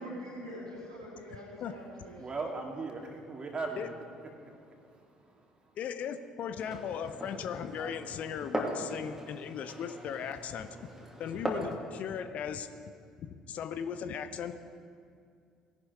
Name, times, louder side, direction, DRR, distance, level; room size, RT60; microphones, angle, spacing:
voice 1, 0.0-2.2, equal, 85° right, -6 dB, 3.8 m, -44 dB
voice 2, 2.2-3.9 4.2-5.8, right 3 dB, 30° right, 1 dB, 2.5 m, -40 dB
voice 3, 5.8-10.7 11.2-12.7 13.2-14.6, left 8 dB, 50° left, 10 dB, 0.8 m, -37 dB
Glass, 6.6-11.7, right 1 dB, 10° right, 2.7 m, -39 dB
17.5 x 11.0 x 4.9 m, 2.3 s
figure-of-eight pair, 55°, 3 cm